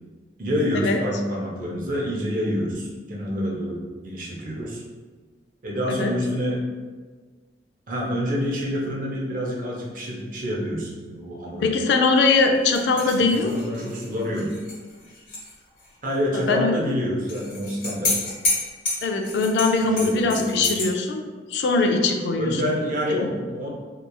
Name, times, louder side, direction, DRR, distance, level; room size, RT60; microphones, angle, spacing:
voice 1, 0.4-4.8 5.6-6.6 7.9-11.7 13.1-14.5 16.0-18.2 20.0-20.7 22.4-23.7, equal, 50° right, -3 dB, 0.6 m, -27 dB
voice 2, 11.6-13.5 16.3-16.8 19.0-22.7 23.1-23.3, left 3 dB, 65° left, 4 dB, 0.3 m, -21 dB
sound 1, 12.7-15.5 15.8-15.9 17.3-20.9, left 2 dB, 50° left, 1.2 m, -29 dB
2.9 x 2.3 x 2.2 m, 1.4 s
head